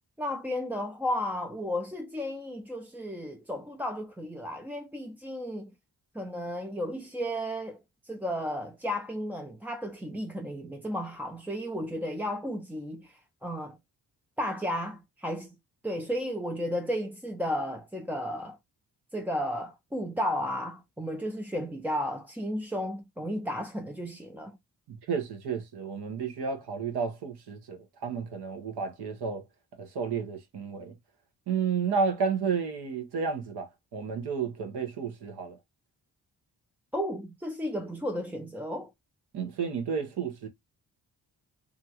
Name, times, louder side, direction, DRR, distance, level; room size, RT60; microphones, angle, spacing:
voice 1, 0.2-5.7 6.1-13.8 14.4-15.6 15.8-18.6 19.1-24.6 36.9-38.9, equal, 5° right, 0.3 m, -33 dB
voice 2, 24.9-29.4 29.8-30.9 31.5-35.6 39.3-40.5, right 5 dB, 75° right, 0.9 m, -32 dB
2.7 x 2.4 x 2.8 m
cardioid pair, 60°, 40 cm